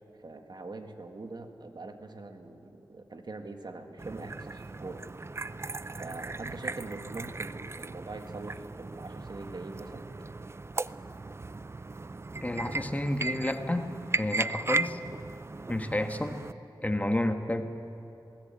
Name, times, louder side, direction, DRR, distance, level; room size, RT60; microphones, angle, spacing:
voice 1, 0.2-5.0 6.0-10.1, right 3 dB, 60° right, 6 dB, 1.7 m, -43 dB
sound 1, 4.0-16.5, right 3 dB, 35° right, 0.4 m, -37 dB
voice 2, 12.4-15.0 15.7-16.4 16.8-17.6, left 1 dB, 20° left, 6 dB, 1.4 m, -30 dB
20.0 x 18.5 x 8.6 m, 3.0 s
wide cardioid pair, 80°, 8 cm